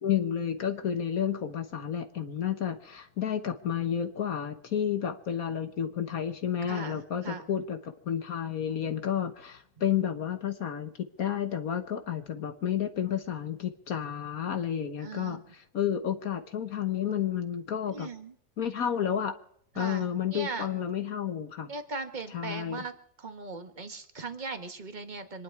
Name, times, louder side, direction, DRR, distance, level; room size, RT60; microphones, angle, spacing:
voice 1, 0.0-10.9 11.2-18.1 18.6-19.3 19.8-21.7 22.3-22.8, left 9 dB, 70° left, 7 dB, 1.6 m, -31 dB
voice 2, 6.6-7.5 15.0-15.4 17.9-18.3 19.8-20.7 21.7-22.9 23.2-25.4, right 3 dB, 30° right, 7 dB, 1.5 m, -39 dB
26.5 x 11.0 x 4.7 m, 0.68 s
omnidirectional pair, 1.6 m